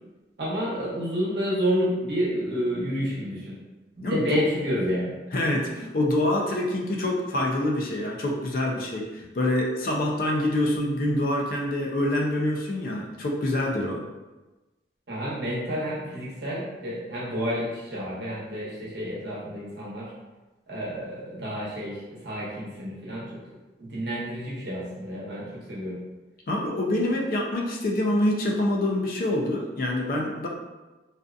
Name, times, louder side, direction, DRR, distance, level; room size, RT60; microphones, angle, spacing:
voice 1, 0.4-3.6 4.0-5.1 15.1-20.1 20.7-23.4 23.8-26.0, equal, 70° right, -6 dB, 0.9 m, -30 dB
voice 2, 4.0-4.4 5.3-14.0 26.5-30.5, left 1 dB, 50° left, -1 dB, 0.4 m, -26 dB
2.5 x 2.3 x 2.3 m, 1.1 s
head